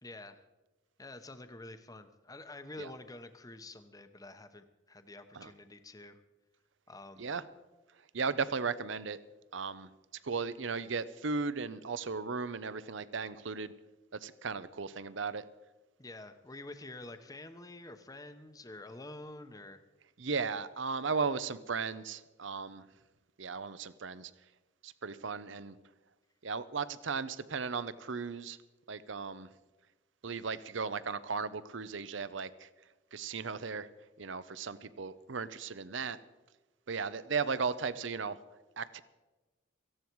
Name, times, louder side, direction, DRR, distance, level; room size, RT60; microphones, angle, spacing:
voice 1, 0.0-0.4 1.0-6.2 6.9-7.3 16.0-19.8, left 2 dB, 20° left, 9 dB, 0.9 m, -48 dB
voice 2, 8.1-9.2 9.5-9.9 10.2-13.7 14.2-15.4 20.2-22.8 23.4-24.3 24.8-25.8 26.4-28.6 28.9-29.5 30.2-32.7 33.1-33.9 34.2-36.2 36.9-38.4 38.8-39.0, right 5 dB, 70° right, 16 dB, 0.7 m, -36 dB
18.0 x 15.0 x 4.7 m, 1.2 s
head